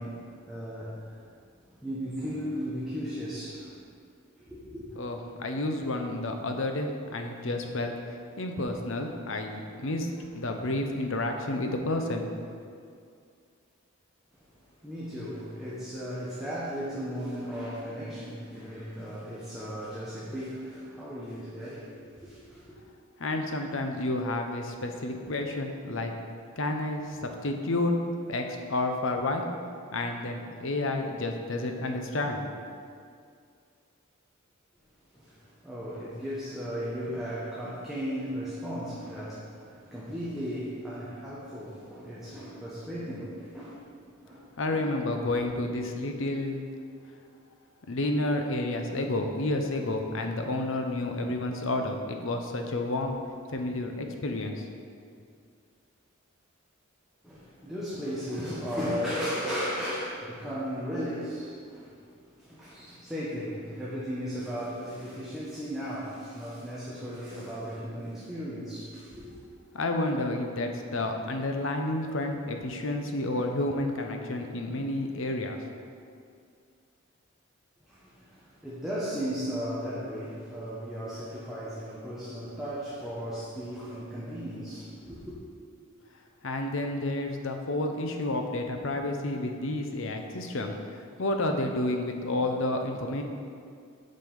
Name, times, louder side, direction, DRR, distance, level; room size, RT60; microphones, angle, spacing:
voice 1, 0.0-1.3 1.7-3.9 4.4-4.9 14.3-22.8 35.1-44.9 57.2-69.3 77.8-85.4, equal, ahead, -9 dB, 1.1 m, -36 dB
voice 2, 5.0-12.4 23.2-26.1 26.6-27.9 28.3-29.4 29.9-32.5 44.6-46.7 47.9-53.2 53.5-54.6 69.7-75.6 86.4-93.2, left 2 dB, 65° left, 4 dB, 0.8 m, -30 dB
7.6 x 5.5 x 5.4 m, 2.3 s
head